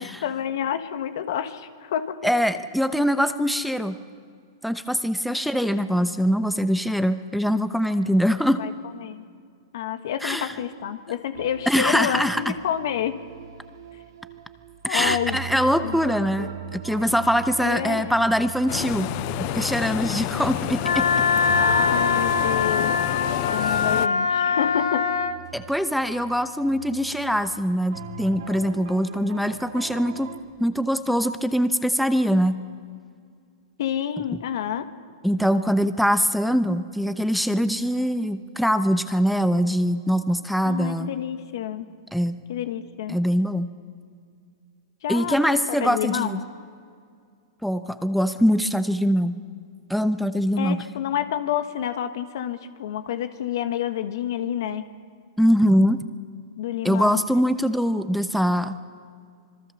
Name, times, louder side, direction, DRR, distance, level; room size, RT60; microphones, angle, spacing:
voice 1, 0.0-2.3 5.3-5.4 8.6-8.7 9.0-9.2 9.7-13.2 14.9-15.4 15.8-16.0 16.4-16.5 17.6-18.1 21.5-23.0 23.5-25.1 33.8-34.9 40.6-41.9 42.5-43.2 45.0-46.5 50.6-54.9 56.6-57.2, left 10 dB, 70° left, 10 dB, 1.4 m, -28 dB
voice 2, 2.2-4.0 4.6-8.7 10.2-10.5 11.7-12.5 14.8-19.1 19.4-21.1 25.5-30.3 30.6-32.5 35.2-41.1 42.1-42.4 43.1-43.7 45.1-46.4 47.6-49.4 49.9-50.8 55.4-56.0 56.8-58.8, equal, ahead, 10 dB, 0.9 m, -23 dB
sound 1, 11.3-30.4, right 9 dB, 80° right, 2.3 m, -40 dB
sound 2, 18.7-24.1, left 18 dB, 45° left, 0.5 m, -29 dB
Wind instrument woodwind instrument, 20.8-25.4, left 5 dB, 90° left, 1.3 m, -22 dB
26.5 x 20.5 x 7.0 m, 2.2 s
hypercardioid pair, 120°, 2 cm